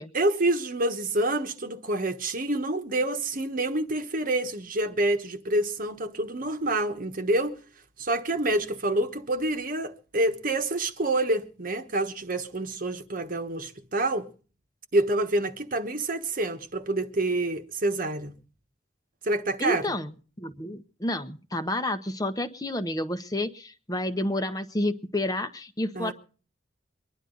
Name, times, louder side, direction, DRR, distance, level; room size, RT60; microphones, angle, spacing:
voice 1, 0.1-7.6 8.0-14.3 14.9-18.3 19.2-19.9 25.9-26.1, right 2 dB, 50° right, 1.3 m, -27 dB
voice 2, 19.6-26.1, left 1 dB, 20° left, 1.0 m, -30 dB
24.0 x 11.0 x 4.0 m
head